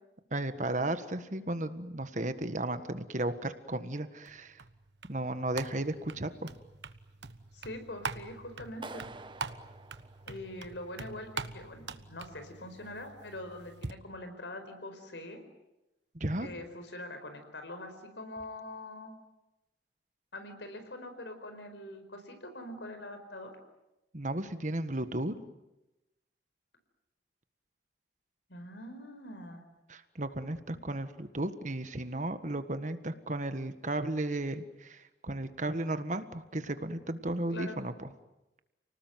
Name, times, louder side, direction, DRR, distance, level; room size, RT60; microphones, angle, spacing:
voice 1, 0.3-4.6 5.1-6.5 16.1-16.5 24.1-25.3 29.9-38.1, right 1 dB, 45° right, 10 dB, 1.6 m, -34 dB
sound 1, 4.3-13.9, right 4 dB, 80° right, 1.3 m, -44 dB
voice 2, 7.5-9.1 10.3-15.4 16.4-19.1 20.3-23.5 28.5-29.6 37.5-37.8, left 1 dB, 85° left, 8 dB, 4.9 m, -43 dB
Clapping, 8.8-10.9, right 3 dB, 25° right, 1.1 m, -47 dB
30.0 x 19.5 x 9.4 m, 0.98 s
head